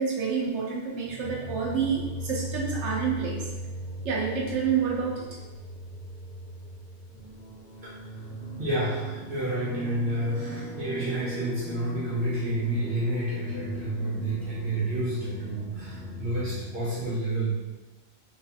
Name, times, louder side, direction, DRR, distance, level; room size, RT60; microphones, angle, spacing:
voice 1, 0.0-3.5 4.0-5.3, right 6 dB, 85° right, -3 dB, 1.0 m, -28 dB
sound 1, 1.1-9.9, equal, 45° left, 0.7 m, -39 dB
sound 2, 7.1-17.1, equal, 15° left, 1.3 m, -38 dB
voice 2, 7.8-8.2 8.6-17.6, right 1 dB, 45° right, -11 dB, 1.3 m, -30 dB
3.7 x 3.2 x 2.7 m, 1.2 s
omnidirectional pair, 1.2 m